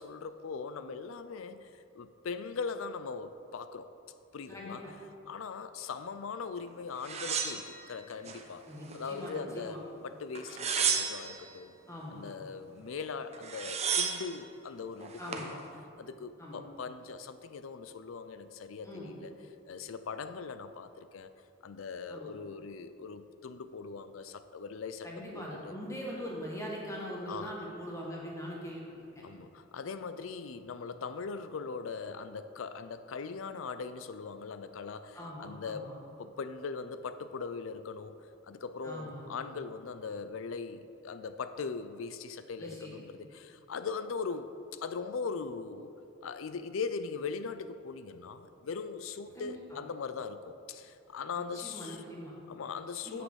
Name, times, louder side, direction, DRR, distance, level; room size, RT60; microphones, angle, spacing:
voice 1, 0.0-3.9 4.3-4.8 5.3-8.7 8.9-11.8 12.1-15.6 16.0-19.3 19.7-21.3 21.6-25.1 25.3-25.7 27.3-27.5 29.2-45.9 46.2-52.0 52.5-53.2, left 5 dB, 75° left, 12 dB, 0.5 m, -40 dB
voice 2, 4.5-4.9 8.7-9.8 11.9-12.2 15.2-15.6 16.4-16.6 18.8-19.1 22.1-22.3 25.0-29.2 35.1-36.0 38.8-39.3 42.6-43.0 49.3-49.8 51.4-52.4 53.0-53.2, equal, 15° left, -4 dB, 1.9 m, -42 dB
sound 1, 7.0-8.4 8.8-9.6 10.4-11.4 13.0-13.1 13.3-14.3 15.0-15.5, right 6 dB, 35° right, 0.8 m, -33 dB
7.7 x 6.5 x 6.3 m, 2.7 s
head